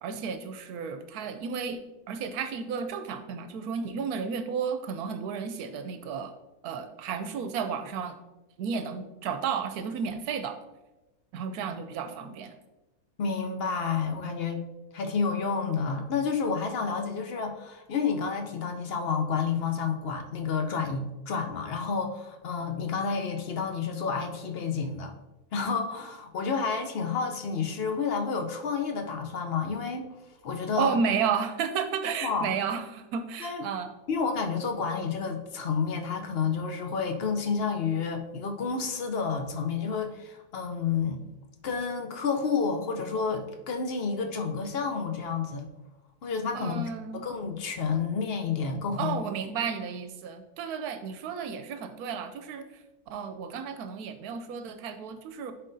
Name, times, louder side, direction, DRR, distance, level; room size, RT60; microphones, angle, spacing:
voice 1, 0.0-1.8 2.1-6.3 6.6-8.2 8.6-10.6 11.3-12.5 30.8-33.9 46.5-47.2 49.0-52.7 53.1-55.5, right 6 dB, 80° right, 9 dB, 1.1 m, -32 dB
voice 2, 13.2-14.6 14.9-25.1 25.5-30.1 30.4-31.0 32.2-32.5 33.4-33.6 34.1-41.2 41.6-45.7 46.2-49.2, left 5 dB, 55° left, 5 dB, 0.7 m, -30 dB
11.0 x 4.3 x 2.6 m, 1.1 s
omnidirectional pair, 1.6 m